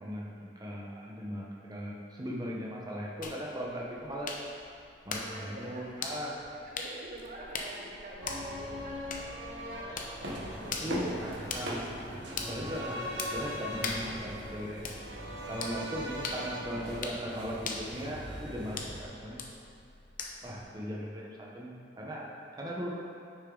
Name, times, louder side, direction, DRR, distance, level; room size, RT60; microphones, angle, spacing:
voice 1, 0.0-4.3 5.0-6.3 10.8-11.8 12.3-13.0 13.3-14.9 15.5-19.4 20.4-22.2 22.5-23.0, equal, 20° right, -4 dB, 1.0 m, -38 dB
sound 1, 3.2-20.6, left 4 dB, 50° left, 0.8 m, -42 dB
voice 2, 5.2-6.2 6.6-11.3, right 1 dB, 45° right, -2 dB, 1.0 m, -47 dB
sound 2, 8.2-18.3 18.6-18.7, equal, 90° right, 1.1 m, -42 dB
sound 3, 10.2-19.0, right 1 dB, 70° right, 1.2 m, -42 dB
9.7 x 6.3 x 3.9 m, 2.5 s
head